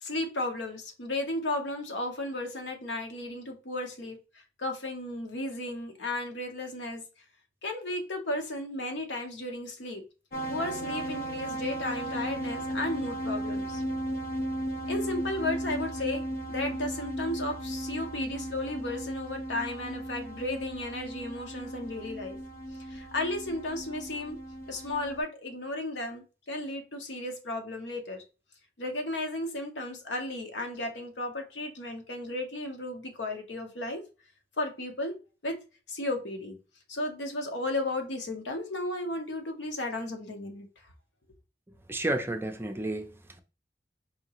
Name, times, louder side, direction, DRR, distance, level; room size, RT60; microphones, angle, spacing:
voice 1, 0.0-4.2 4.6-7.0 7.6-10.0 10.5-13.8 14.9-16.2 16.5-22.4 22.9-24.4 24.7-28.2 28.8-34.0 34.6-35.1 35.4-35.6 35.9-36.6 36.9-40.7, left 2 dB, 80° left, 0.9 m, -34 dB
sound 1, 10.3-25.2, right 1 dB, 55° left, 0.7 m, -36 dB
voice 2, 41.9-43.4, right 1 dB, 15° right, 0.5 m, -32 dB
4.3 x 2.8 x 2.9 m
head